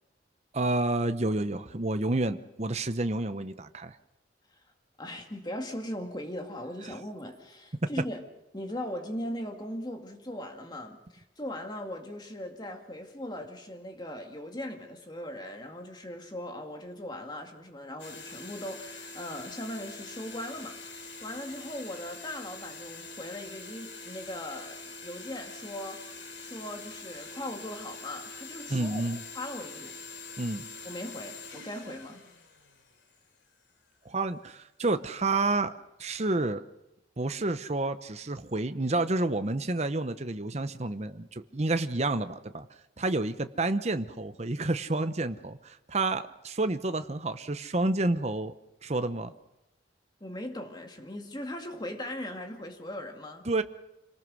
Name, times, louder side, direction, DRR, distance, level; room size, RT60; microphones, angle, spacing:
voice 1, 0.5-4.0 7.8-7.9 28.7-29.2 30.4-30.7 34.0-35.7 36.0-36.6 37.2-42.7 43.0-48.5 48.8-49.3 53.5-53.6, right 2 dB, 35° right, 10 dB, 0.9 m, -29 dB
voice 2, 5.0-8.2 8.5-29.0 29.3-30.0 30.8-32.2 50.2-53.5, left 1 dB, 25° left, 4 dB, 2.1 m, -39 dB
sound 1, 18.0-33.2, left 3 dB, 85° left, 3.2 m, -44 dB
26.5 x 19.0 x 6.3 m, 0.94 s
head